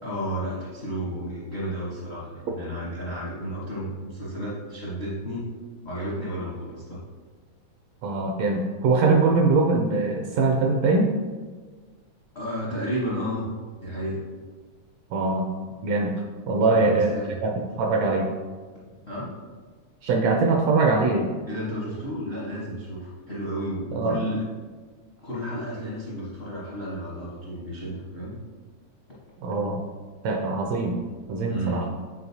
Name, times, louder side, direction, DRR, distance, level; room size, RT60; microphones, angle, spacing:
voice 1, 0.0-5.5 5.8-7.0 12.3-13.4 13.8-14.2 16.6-17.4 19.0-19.3 21.5-24.4 25.2-28.3 31.5-31.9, equal, 55° left, -7 dB, 0.7 m, -32 dB
voice 2, 8.0-11.1 15.1-15.5 15.8-16.2 16.5-17.1 17.4-18.3 20.0-21.3 23.9-24.2 29.4-29.8 30.2-31.0 31.3-31.8, right 3 dB, 75° right, 1 dB, 1.6 m, -22 dB
8.5 x 4.2 x 2.7 m, 1.4 s
omnidirectional pair, 3.4 m